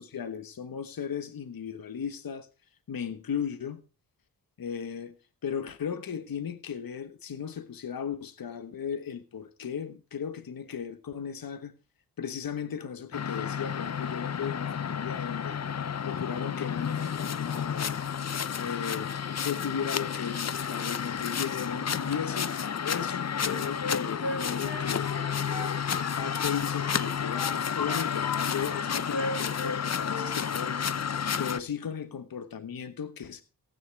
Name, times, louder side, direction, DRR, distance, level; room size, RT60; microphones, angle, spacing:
voice 1, 0.0-2.5 2.9-3.8 4.6-5.2 5.4-11.7 12.2-15.6 16.0-18.1 18.6-19.1 19.4-25.1 25.9-31.0 31.4-33.4, left 7 dB, 60° left, 1.3 m, -36 dB
sound 1, 13.1-31.6, left 7 dB, 40° left, 0.8 m, -31 dB
Wind instrument woodwind instrument, 23.4-26.6 26.8-28.4 28.7-29.8 30.0-30.3, left 2 dB, 75° left, 5.2 m, -36 dB
16.5 x 9.1 x 4.7 m
cardioid pair, 70°, 40 cm